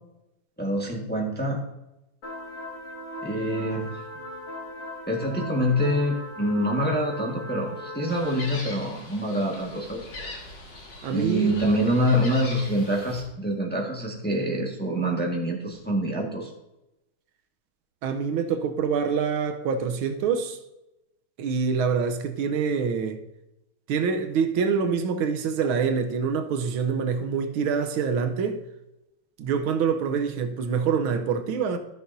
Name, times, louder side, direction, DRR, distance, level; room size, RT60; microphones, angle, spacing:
voice 1, 0.6-1.6 3.2-3.9 5.1-10.1 11.1-16.5, equal, 5° left, 1.2 m, -26 dB
sound 1, 2.2-8.5, left 1 dB, 70° left, 2.7 m, -39 dB
Gull seagull, 8.1-13.2, left 2 dB, 90° left, 2.7 m, -41 dB
voice 2, 11.0-11.6 18.0-20.6 21.4-23.2 23.9-28.6 29.4-31.8, right 6 dB, 85° right, 1.6 m, -25 dB
14.0 x 6.7 x 2.7 m
omnidirectional pair, 2.2 m